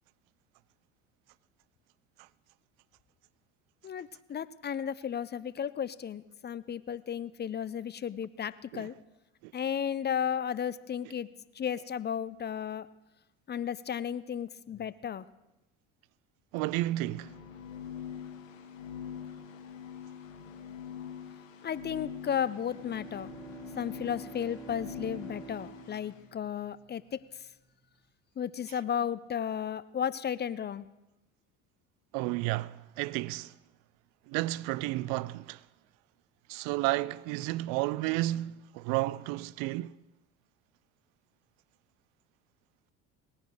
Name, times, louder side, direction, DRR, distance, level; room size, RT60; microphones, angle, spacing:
voice 1, 3.8-8.9 9.5-11.3 11.6-12.9 13.5-15.2 21.6-23.3 23.8-27.2 28.4-30.9, left 8 dB, 25° left, 0.5 m, -34 dB
voice 2, 16.5-17.3 32.1-33.5 34.3-35.6 36.5-39.9, right 17 dB, 65° right, 0.5 m, -32 dB
sound 1, 17.1-26.2, left 8 dB, 85° left, 1.3 m, -44 dB
Bowed string instrument, 22.3-27.0, right 3 dB, 5° left, 2.6 m, -48 dB
19.0 x 9.6 x 6.5 m
hypercardioid pair, 65°, 38 cm